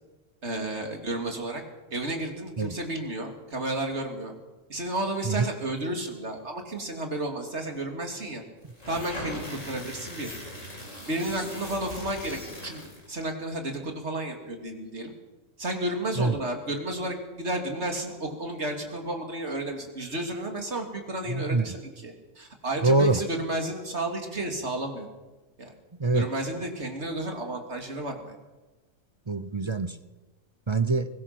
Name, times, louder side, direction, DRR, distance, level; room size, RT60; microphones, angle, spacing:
voice 1, 0.4-1.6 1.9-4.3 4.7-8.4 8.9-10.4 11.1-12.8 13.1-15.1 15.6-25.1 25.6-25.7 26.1-28.4, right 1 dB, 55° right, 3 dB, 3.2 m, -32 dB
sound 1, 8.7-13.1, left 1 dB, 70° left, 5.5 m, -39 dB
voice 2, 21.3-21.6 22.8-23.2 26.0-26.3 29.3-29.9 30.7-31.1, right 3 dB, 30° right, 12 dB, 0.6 m, -24 dB
23.0 x 20.0 x 6.1 m, 1.1 s
omnidirectional pair, 1.4 m